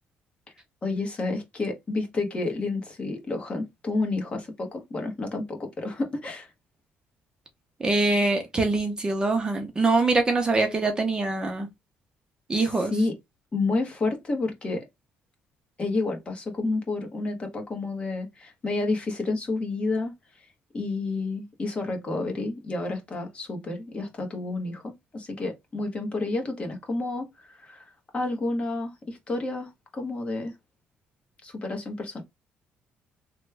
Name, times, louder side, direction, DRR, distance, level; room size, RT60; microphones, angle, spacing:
voice 1, 0.8-6.5 12.9-13.1 13.5-14.8 15.8-20.5 20.7-30.5 31.4-32.2, left 3 dB, 30° left, 1.0 m, -30 dB
voice 2, 7.8-11.7 12.5-12.9, right 3 dB, 20° right, 0.7 m, -24 dB
3.1 x 2.2 x 3.2 m
cardioid pair, 125°, 4 cm